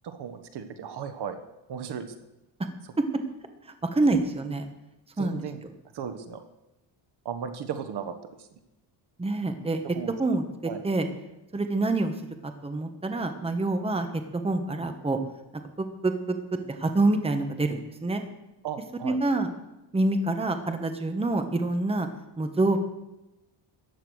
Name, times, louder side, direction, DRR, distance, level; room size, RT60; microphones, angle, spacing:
voice 1, 0.0-1.4 1.7-2.1 5.2-5.6 5.9-6.4 7.2-8.1 9.9-10.1 10.7-10.8 18.6-19.2, right 7 dB, 60° right, 9 dB, 1.4 m, -35 dB
voice 2, 3.8-4.7 5.2-5.5 9.2-9.8 10.2-10.4 10.8-11.0 11.5-12.1 12.4-14.1 14.3-15.2 15.8-16.1 16.8-18.2 19.0-19.5 19.9-22.1 22.4-22.8, right 2 dB, 15° right, 7 dB, 1.3 m, -26 dB
14.5 x 9.9 x 6.4 m, 0.96 s
cardioid pair, 145°, 46 cm